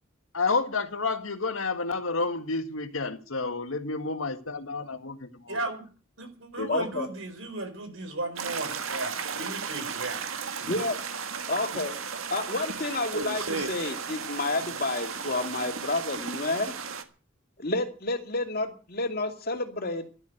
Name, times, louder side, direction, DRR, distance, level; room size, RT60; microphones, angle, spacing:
voice 1, 0.3-5.6 6.6-6.7, left 4 dB, 80° left, 1.8 m, -30 dB
voice 2, 5.5-5.9 6.2-10.2 10.6-10.8, right 2 dB, 70° right, 4.8 m, -35 dB
voice 3, 6.7-7.1 10.7-11.0 11.5-11.9 12.3-16.7 17.6-20.0, left 2 dB, 45° left, 2.5 m, -30 dB
sound 1, 8.4-17.0, right 6 dB, 90° right, 1.8 m, -35 dB
12.5 x 12.0 x 7.9 m
head